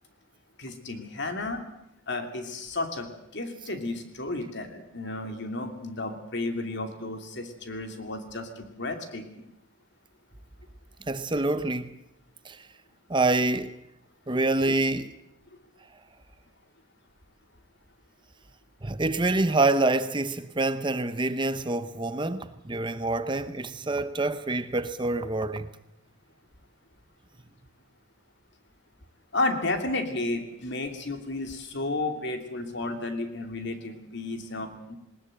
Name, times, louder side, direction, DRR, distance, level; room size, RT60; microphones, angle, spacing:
voice 1, 0.6-1.6 2.1-9.5 14.3-14.4 29.3-35.0, left 2 dB, 55° left, 2.8 m, -32 dB
voice 2, 11.1-12.0 12.4-12.7 13.1-13.8 14.3-15.1 18.8-25.7, right 2 dB, 25° right, 0.8 m, -26 dB
20.0 x 19.5 x 7.9 m
head